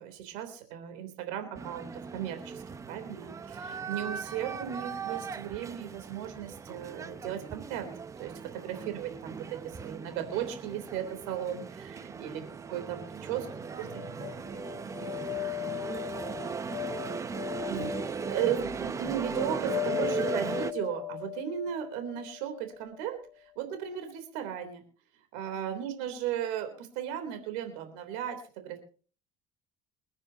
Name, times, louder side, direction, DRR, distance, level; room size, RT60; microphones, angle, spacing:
voice 1, 0.0-2.6 2.9-7.9 8.2-12.4 12.7-13.5 17.7-24.8 25.3-28.8, right 10 dB, 80° right, 7 dB, 3.5 m, -36 dB
sound 1, 1.5-20.7, right 5 dB, 25° right, 0.8 m, -38 dB
voice 2, 12.1-12.6 13.1-17.7, right 4 dB, 40° right, 5 dB, 6.1 m, -55 dB
sound 2, 13.9-23.0, left 16 dB, 80° left, 1.3 m, -38 dB
29.0 x 9.8 x 2.9 m, 0.40 s
cardioid pair, 120°, 13 cm